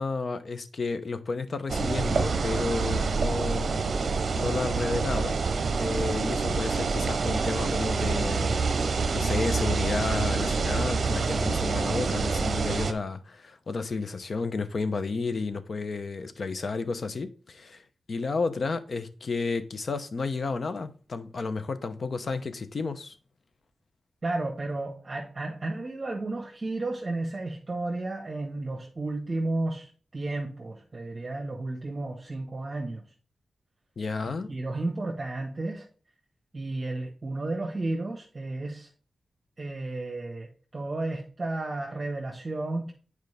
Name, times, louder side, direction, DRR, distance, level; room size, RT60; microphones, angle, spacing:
voice 1, 0.0-5.4 5.8-23.2 34.0-34.6, left 4 dB, 55° left, 0.7 m, -32 dB
sound 1, 1.7-12.9, right 4 dB, 60° right, 0.7 m, -27 dB
voice 2, 24.2-33.0 34.5-35.8 36.5-38.9 39.6-42.9, right 2 dB, 30° right, 1.4 m, -33 dB
9.2 x 4.8 x 3.4 m
wide cardioid pair, 110°, 0 cm